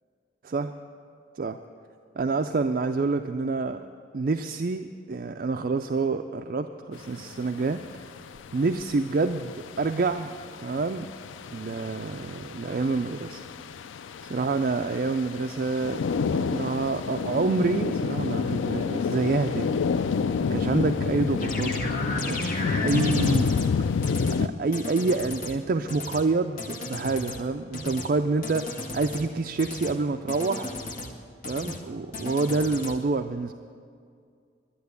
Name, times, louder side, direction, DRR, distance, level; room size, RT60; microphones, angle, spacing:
voice 1, 2.2-3.8 4.1-8.1 8.5-10.4 10.6-11.1 11.5-13.4 14.2-16.0 16.3-19.8 20.5-23.5 24.4-30.8 31.4-33.5, right 3 dB, 50° right, 7 dB, 0.4 m, -27 dB
sound 1, 7.0-24.5, left 5 dB, 90° left, 0.4 m, -29 dB
sound 2, 21.4-23.7 24.0-24.4 24.7-25.5 25.9-26.2 26.6-27.4 27.7-28.1 28.4-29.2 29.6-29.9 30.3-31.1 31.4-31.8 32.1-32.9, left 2 dB, 45° left, 1.5 m, -34 dB
11.5 x 10.5 x 8.2 m, 2.2 s
head